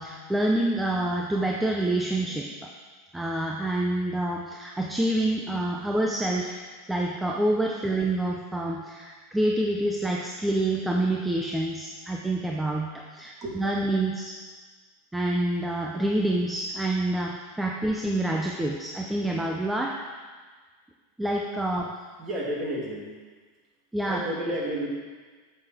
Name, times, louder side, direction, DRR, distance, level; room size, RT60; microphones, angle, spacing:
voice 1, 0.0-2.7 3.1-6.6 6.9-14.3 15.1-20.0 21.2-21.9 23.9-24.2, right 1 dB, 5° right, 0 dB, 0.7 m, -27 dB
voice 2, 22.2-23.2 24.0-24.9, right 1 dB, 25° right, -3 dB, 2.5 m, -31 dB
7.9 x 7.7 x 6.2 m, 1.4 s
supercardioid pair, 145°, 0 cm